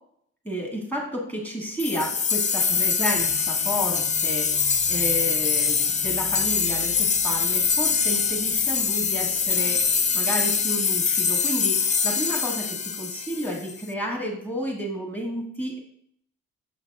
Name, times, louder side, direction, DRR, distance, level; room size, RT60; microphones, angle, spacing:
voice 1, 0.5-4.5 4.9-9.8 10.1-15.8, equal, 5° left, -1 dB, 1.7 m, -31 dB
sound 1, 1.8-13.8, left 6 dB, 25° left, 0.3 m, -24 dB
sound 2, 3.0-10.7, equal, 40° left, 1.5 m, -45 dB
7.1 x 4.0 x 3.5 m, 0.68 s
cardioid pair, 90°, 30 cm